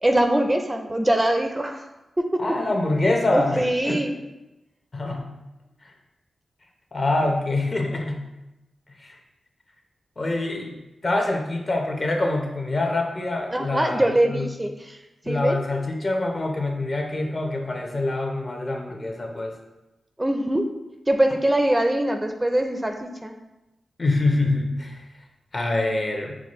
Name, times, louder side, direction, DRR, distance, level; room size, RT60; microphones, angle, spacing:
voice 1, 0.0-1.9 3.3-4.2 13.5-15.0 15.3-15.6 20.2-20.7 21.1-23.3, right 1 dB, 20° right, 4 dB, 0.4 m, -22 dB
voice 2, 2.4-4.0 4.9-5.2 6.9-8.2 9.0-9.2 10.2-10.7 11.0-14.5 15.2-19.5 24.0-25.0 25.5-26.4, left 2 dB, 45° left, 2 dB, 0.8 m, -25 dB
6.0 x 2.2 x 3.1 m, 0.97 s
cardioid pair, 55°, 0 cm